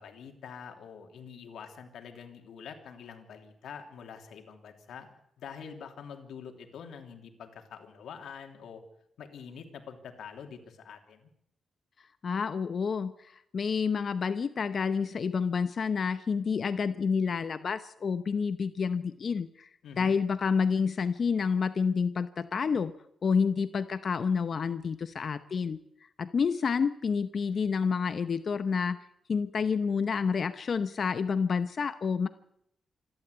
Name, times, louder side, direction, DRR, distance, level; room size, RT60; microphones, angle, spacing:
voice 1, 0.0-5.1 5.4-8.8 9.2-11.3 19.8-20.1, left 7 dB, 80° left, 4 dB, 3.1 m, -46 dB
voice 2, 12.2-19.7 20.0-22.9 23.2-25.8 26.2-29.0 29.3-32.3, left 5 dB, 45° left, 11 dB, 0.8 m, -29 dB
27.0 x 12.0 x 8.2 m, 0.73 s
wide cardioid pair, 130°, 0 cm